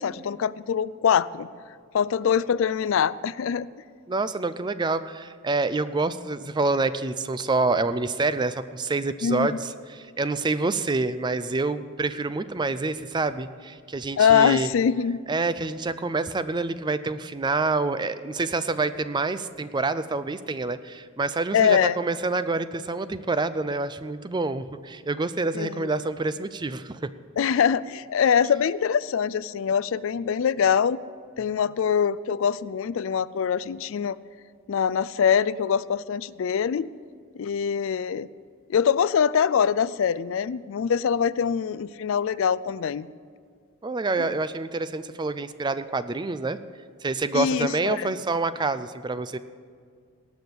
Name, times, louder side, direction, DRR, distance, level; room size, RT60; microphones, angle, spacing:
voice 1, 0.0-1.5 1.9-3.7 9.2-9.6 14.2-15.2 21.5-22.0 25.5-25.9 27.4-31.0 31.4-34.2 34.7-36.9 37.4-38.3 38.7-43.1 44.2-44.3 47.3-48.1, left 7 dB, 65° left, 18 dB, 0.4 m, -23 dB
voice 2, 4.1-14.7 15.3-27.1 43.8-46.6 47.0-49.4, right 3 dB, 20° right, 13 dB, 0.4 m, -27 dB
18.5 x 6.3 x 8.5 m, 2.1 s
head